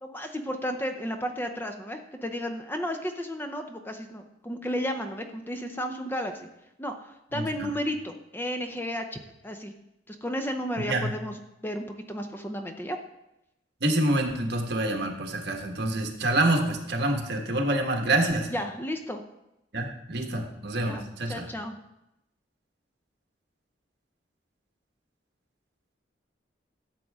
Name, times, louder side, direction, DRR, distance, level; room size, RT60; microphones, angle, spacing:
voice 1, 0.0-6.5 6.8-9.7 10.1-11.4 11.6-13.0 18.5-19.2 20.8-21.8, equal, 10° left, 5 dB, 0.6 m, -33 dB
voice 2, 7.3-7.7 10.9-11.1 13.8-18.5 19.7-21.5, right 1 dB, 60° right, 3 dB, 1.4 m, -27 dB
12.0 x 7.4 x 3.6 m, 0.87 s
head